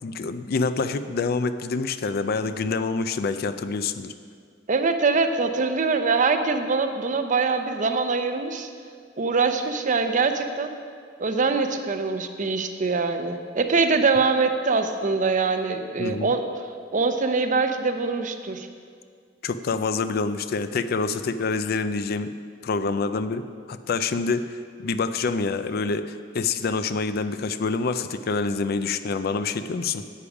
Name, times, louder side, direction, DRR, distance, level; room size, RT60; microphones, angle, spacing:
voice 1, 0.0-4.1 16.0-16.3 19.4-22.3 22.6-23.4 23.7-30.0, left 4 dB, 55° left, 11 dB, 0.4 m, -26 dB
voice 2, 4.7-8.7 9.2-10.7 11.2-16.5 16.9-18.7, right 4 dB, 45° right, 7 dB, 0.6 m, -23 dB
10.0 x 8.6 x 4.8 m, 2.1 s
head